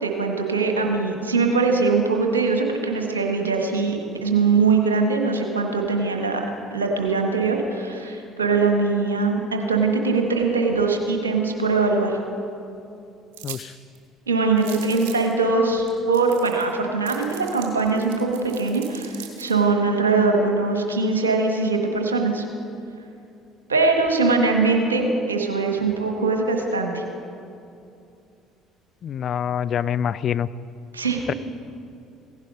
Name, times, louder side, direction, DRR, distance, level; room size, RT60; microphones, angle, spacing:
voice 1, 0.0-6.4 6.7-12.2 14.3-22.4 23.7-27.0 30.9-31.2, right 4 dB, 90° right, 3 dB, 1.3 m, -22 dB
sound 1, 13.3-13.6 13.9-14.0 14.6-15.3 15.9-16.0 16.1-16.7 17.1-19.5, right 9 dB, 70° right, 1.9 m, -39 dB
voice 2, 29.0-30.5 31.3-31.4, left 9 dB, 50° left, 16 dB, 0.4 m, -25 dB
16.0 x 10.5 x 5.3 m, 2.7 s
hypercardioid pair, 55°, 0 cm